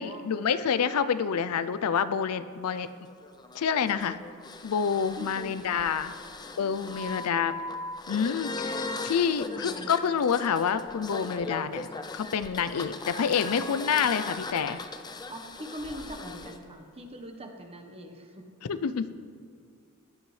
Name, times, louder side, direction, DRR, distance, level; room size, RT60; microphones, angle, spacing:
voice 1, 0.0-2.9 3.5-4.2 4.6-6.1 6.6-7.5 8.1-14.8 18.7-19.1, left 7 dB, 75° left, 13 dB, 0.5 m, -28 dB
sound 1, 2.8-16.6, left 3 dB, 20° left, 0.5 m, -39 dB
voice 2, 5.2-6.3 7.2-7.8 9.3-9.9 15.3-18.5, equal, 25° right, 4 dB, 1.1 m, -43 dB
16.0 x 11.0 x 3.2 m, 2.5 s
head